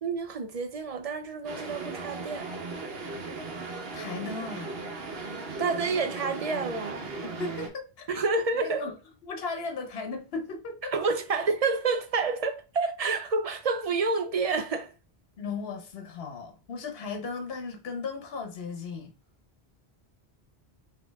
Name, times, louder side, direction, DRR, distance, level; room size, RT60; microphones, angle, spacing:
voice 1, 0.0-2.5 5.6-7.1 8.1-8.9 10.9-14.9, right 4 dB, 45° right, 0.5 m, -29 dB
sound 1, 1.4-7.7, right 3 dB, 70° right, 1.1 m, -37 dB
voice 2, 3.9-4.8 7.2-8.1 8.5-9.0 9.2-10.9 15.4-19.1, left 4 dB, 70° left, 1.1 m, -36 dB
4.1 x 2.9 x 3.4 m
omnidirectional pair, 1.1 m